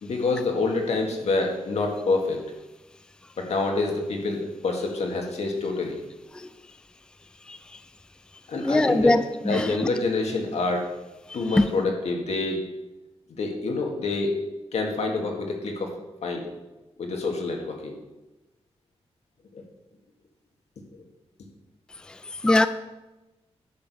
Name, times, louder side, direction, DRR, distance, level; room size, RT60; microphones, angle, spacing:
voice 1, 0.0-2.4 3.4-6.0 8.5-9.1 9.5-10.9 11.3-12.7 13.4-14.4 14.7-15.9 16.2-16.5 17.0-18.0 19.5-19.6, left 3 dB, 85° left, 1 dB, 1.9 m, -27 dB
voice 2, 8.6-9.9 11.5-11.7 22.1-22.7, left 2 dB, 10° left, 11 dB, 0.3 m, -22 dB
10.5 x 6.5 x 5.4 m, 1.0 s
wide cardioid pair, 155°, 11 cm